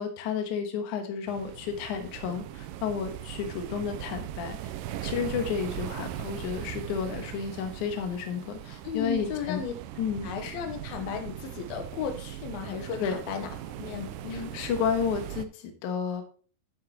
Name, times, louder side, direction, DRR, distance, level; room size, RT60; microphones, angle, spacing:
voice 1, 0.0-4.7 5.0-9.6 10.0-10.3 13.0-13.2 14.3-16.2, left 7 dB, 65° left, 6 dB, 2.4 m, -31 dB
sound 1, 1.3-15.4, right 12 dB, 80° right, 2.1 m, -39 dB
voice 2, 8.8-9.7 10.2-13.5 13.8-14.5, left 7 dB, 85° left, 6 dB, 2.9 m, -35 dB
11.5 x 7.5 x 3.0 m, 0.40 s
omnidirectional pair, 4.3 m